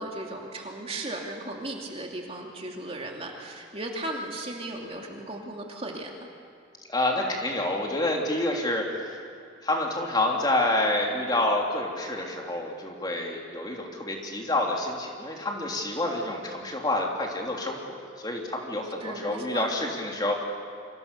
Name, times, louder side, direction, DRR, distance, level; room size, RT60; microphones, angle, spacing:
voice 1, 0.0-6.1 19.0-19.7, right 1 dB, 30° right, 0 dB, 2.8 m, -36 dB
voice 2, 6.9-9.2 9.6-17.8 18.2-20.4, left 1 dB, 20° left, 0 dB, 3.2 m, -28 dB
29.0 x 25.0 x 6.9 m, 2.4 s
head